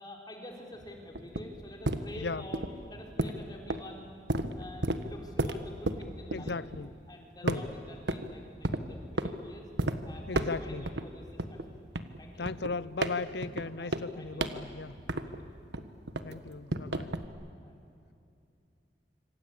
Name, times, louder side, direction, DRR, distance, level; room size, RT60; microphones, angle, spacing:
voice 1, 0.0-6.6 7.1-9.7 10.0-11.9 12.2-12.5 13.7-14.5 15.2-15.4 17.6-17.8, left 1 dB, 25° left, 4.2 m, -48 dB
sound 1, 0.8-7.1 7.5-8.3 8.6-9.3 9.8-10.0 10.3-11.0 11.4-15.5 15.7-17.3, right 1 dB, 80° right, 1.5 m, -33 dB
voice 2, 6.3-6.9 7.4-7.7 10.3-10.9 12.4-15.0 16.2-17.1, left 3 dB, 70° left, 0.7 m, -37 dB
26.5 x 25.5 x 8.6 m
head